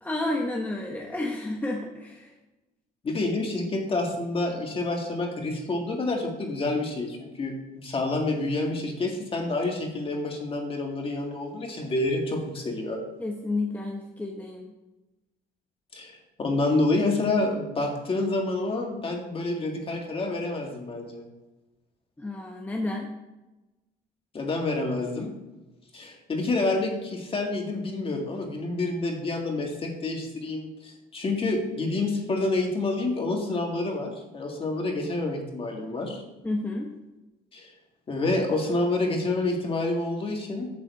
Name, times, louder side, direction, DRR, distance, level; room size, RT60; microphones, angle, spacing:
voice 1, 0.0-2.3 13.2-14.7 22.2-23.1 36.4-36.9, left 2 dB, 10° left, 1 dB, 0.9 m, -31 dB
voice 2, 3.0-13.0 15.9-21.3 24.3-25.3 25.9-36.2 37.5-37.7 38.1-40.7, left 2 dB, 35° left, 2 dB, 2.0 m, -28 dB
8.6 x 4.0 x 7.0 m, 1.1 s
cardioid pair, 110°, 17 cm